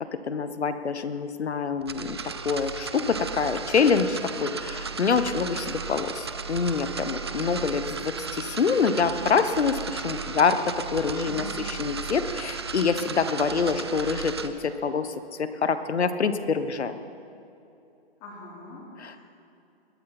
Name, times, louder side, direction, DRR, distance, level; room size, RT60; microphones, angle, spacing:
voice 1, 0.0-2.2 2.4-15.1 15.4-16.9, left 5 dB, 85° left, 11 dB, 1.2 m, -26 dB
sound 1, 1.8-14.5, right 5 dB, 25° right, 0.4 m, -35 dB
voice 2, 11.2-11.6 13.6-13.8 18.2-19.3, left 2 dB, 20° left, -3 dB, 3.1 m, -43 dB
21.5 x 12.5 x 4.4 m, 2.7 s
hypercardioid pair, 155°, 32 cm